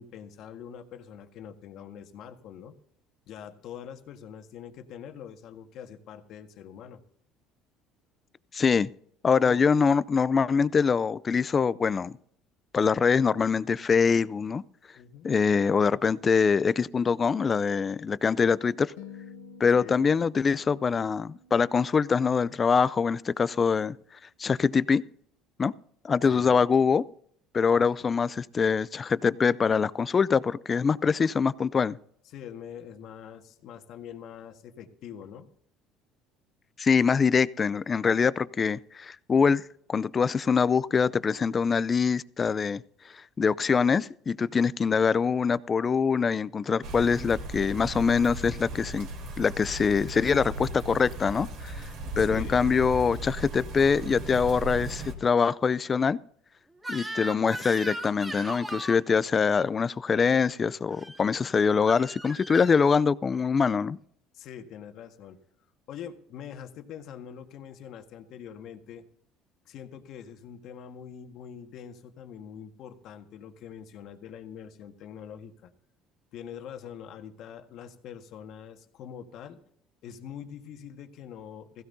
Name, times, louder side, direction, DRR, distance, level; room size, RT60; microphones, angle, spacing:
voice 1, 0.0-2.7 3.3-7.0 9.4-9.6 14.9-15.3 19.8-20.1 26.2-26.7 27.7-28.2 32.2-35.5 52.2-52.6 64.3-65.4 65.9-69.0 69.6-75.7 76.3-79.6 80.0-81.8, left 8 dB, 65° left, 1.7 m, -44 dB
voice 2, 8.5-8.9 9.2-12.1 12.7-14.6 15.2-18.9 19.6-24.0 24.4-25.0 25.6-25.7 26.0-27.0 27.5-32.0 36.8-39.6 39.9-42.8 43.4-49.1 49.4-51.7 52.2-56.2 56.9-64.0, left 5 dB, 35° left, 0.5 m, -24 dB
sound 1, 19.0-23.3, left 5 dB, 85° left, 0.8 m, -50 dB
sound 2, 46.8-55.1, right 1 dB, 65° right, 3.7 m, -37 dB
Crying sobbing / Screech, 56.8-59.0 60.9-61.2 61.9-62.8, right 1 dB, 15° right, 2.7 m, -37 dB
16.5 x 15.5 x 2.8 m
supercardioid pair, 80°, 0 cm